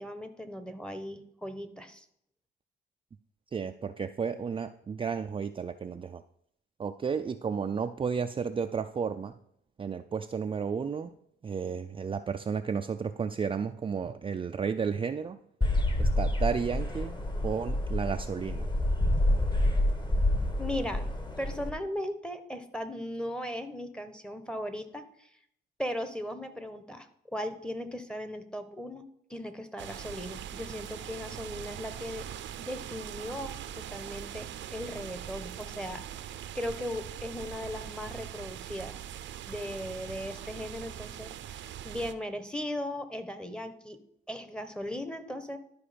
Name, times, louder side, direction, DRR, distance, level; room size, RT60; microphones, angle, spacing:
voice 1, 0.0-2.0 20.6-21.1 21.4-25.3 25.8-29.0 29.3-32.3 32.6-39.0 39.5-41.3 41.8-44.0 44.3-45.6, left 1 dB, 5° left, 8 dB, 1.1 m, -37 dB
voice 2, 3.5-6.2 6.8-9.3 9.8-11.1 11.4-15.4 16.0-17.1 17.4-18.7, right 6 dB, 25° right, 7 dB, 0.4 m, -32 dB
sound 1, 15.6-21.7, left 1 dB, 20° left, 1.5 m, -28 dB
sound 2, 29.8-42.1, right 10 dB, 70° right, 0.6 m, -42 dB
12.0 x 4.8 x 5.1 m, 0.69 s
cardioid pair, 90°, 20 cm